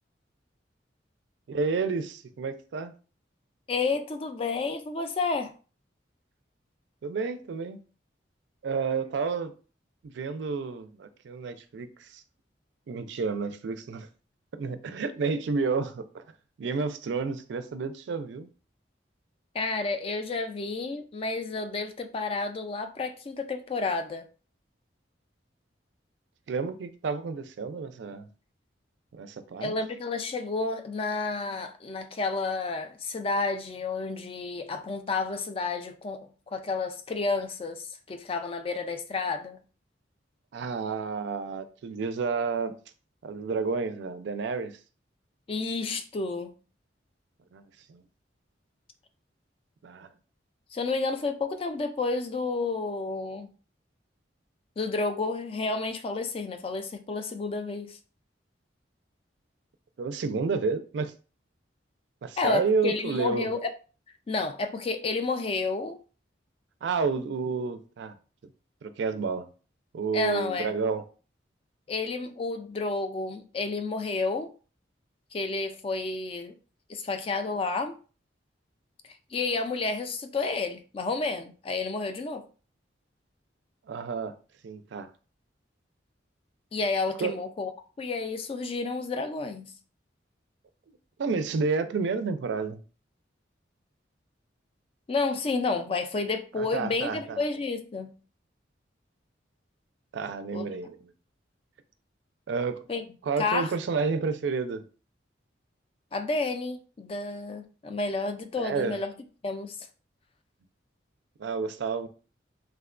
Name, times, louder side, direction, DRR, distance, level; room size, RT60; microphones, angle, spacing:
voice 1, 1.5-2.9 7.0-7.8 8.6-9.5 10.0-12.2 12.9-14.1 14.5-16.2 16.6-18.5 26.5-28.3 29.1-29.8 40.5-42.8 43.2-44.8 47.5-47.6 47.9-48.0 49.8-50.1 60.0-61.1 62.2-63.5 66.8-68.1 68.8-69.5 69.9-71.0 83.9-84.4 84.6-85.1 87.2-87.3 91.2-92.8 96.6-97.4 100.1-101.1 102.5-102.8 103.2-104.8 108.6-109.0 111.4-112.1, right 4 dB, 70° right, 0.4 m, -30 dB
voice 2, 3.7-5.5 19.5-24.3 29.6-39.6 45.5-46.5 50.7-53.5 54.8-58.0 62.4-63.7 64.3-66.0 70.1-70.7 71.9-74.5 75.3-76.5 76.9-78.0 79.3-82.4 86.7-87.7 88.0-89.7 95.1-98.1 100.5-100.7 102.9-103.0 103.4-103.7 106.1-109.1 109.4-109.8, left 3 dB, 30° left, 0.3 m, -30 dB
3.4 x 2.2 x 2.4 m
head